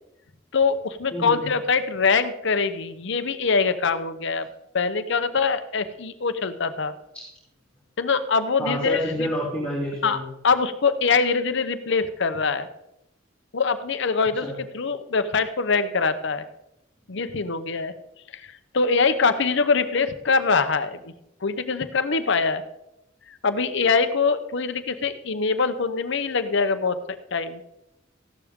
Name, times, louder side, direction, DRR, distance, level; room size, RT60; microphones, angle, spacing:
voice 1, 0.5-4.5 4.7-6.9 8.0-9.0 10.0-10.2 10.4-12.7 13.5-14.5 14.7-16.4 17.1-17.9 18.3-18.4 18.7-21.1 21.4-22.6 23.3-27.0 27.3-27.6, left 4 dB, 65° left, 11 dB, 0.8 m, -23 dB
voice 2, 1.1-1.5 7.3-7.4 8.6-10.2 14.4-14.6, equal, 5° left, -8 dB, 3.3 m, -28 dB
15.0 x 12.0 x 3.7 m, 0.85 s
head